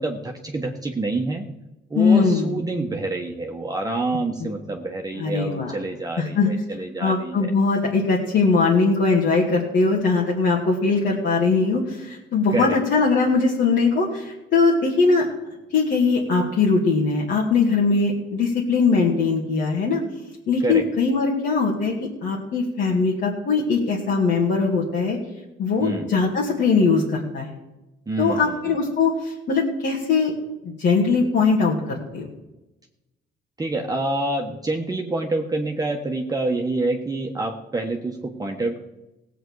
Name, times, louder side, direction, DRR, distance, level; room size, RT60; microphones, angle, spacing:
voice 1, 0.0-1.5 1.9-7.5 12.5-12.8 20.6-20.8 25.8-26.1 28.1-28.8 33.6-38.8, right 2 dB, 20° right, 1 dB, 1.2 m, -27 dB
voice 2, 1.9-2.6 4.4-4.5 5.2-5.8 6.2-6.5 7.0-15.3 15.7-20.0 20.5-21.9 22.2-25.2 25.6-27.5 28.2-30.3 30.6-32.3, left 4 dB, 65° left, -4 dB, 2.3 m, -21 dB
17.0 x 8.2 x 4.8 m, 1.0 s
cardioid pair, 90°, 20 cm